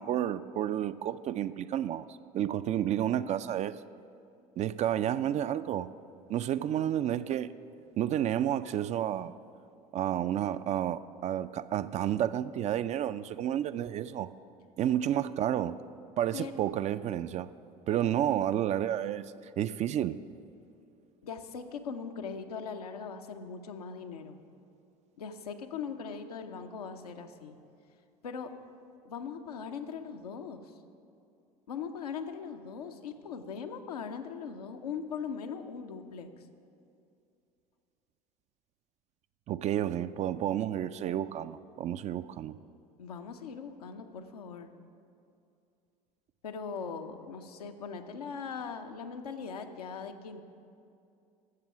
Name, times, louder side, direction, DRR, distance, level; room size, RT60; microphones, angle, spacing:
voice 1, 0.0-3.8 4.6-5.9 6.3-7.5 8.0-9.3 9.9-14.3 14.8-15.8 16.2-17.5 17.9-20.2 39.5-42.6, right 11 dB, 35° right, 14 dB, 0.4 m, -31 dB
voice 2, 21.2-24.4 25.2-27.6 28.2-28.5 29.0-30.7 31.7-36.3 43.0-44.7 46.4-50.4, left 6 dB, 80° left, 5 dB, 0.7 m, -40 dB
12.5 x 7.5 x 6.0 m, 2.6 s
hypercardioid pair, 70°, 19 cm